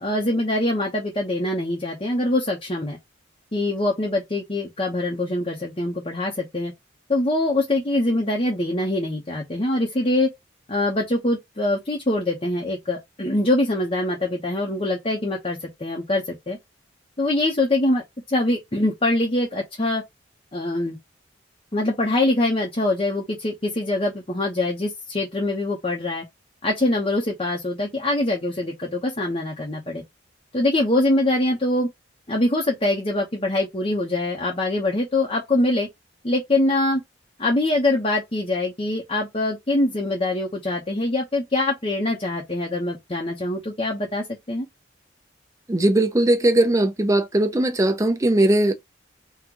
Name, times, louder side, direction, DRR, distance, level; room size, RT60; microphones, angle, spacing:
voice 1, 0.0-3.0 3.5-6.7 7.1-10.3 10.7-16.6 17.2-20.0 20.5-21.0 21.7-26.2 26.6-30.0 30.5-31.9 32.3-35.9 36.2-37.0 37.4-44.7, left 2 dB, 30° left, 0.9 m, -23 dB
voice 2, 45.7-48.7, right 1 dB, 15° right, 0.6 m, -19 dB
3.8 x 2.4 x 4.5 m
head